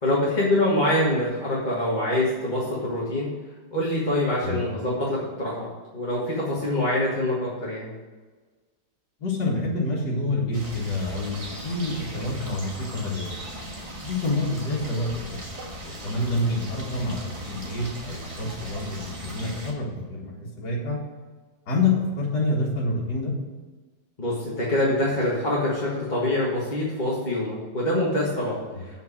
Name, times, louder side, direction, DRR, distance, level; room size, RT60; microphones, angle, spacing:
voice 1, 0.0-3.3 3.7-5.7 5.9-7.9 16.2-16.4 24.2-28.6, left 1 dB, 25° left, -6 dB, 1.7 m, -25 dB
voice 2, 9.2-13.4 14.0-15.1 15.8-21.0 21.7-23.3 28.7-28.8, left 2 dB, 65° left, -6 dB, 2.4 m, -27 dB
sound 1, 10.5-19.7, right 1 dB, 20° right, 1.2 m, -38 dB
7.7 x 5.3 x 7.3 m, 1.3 s
omnidirectional pair, 1.9 m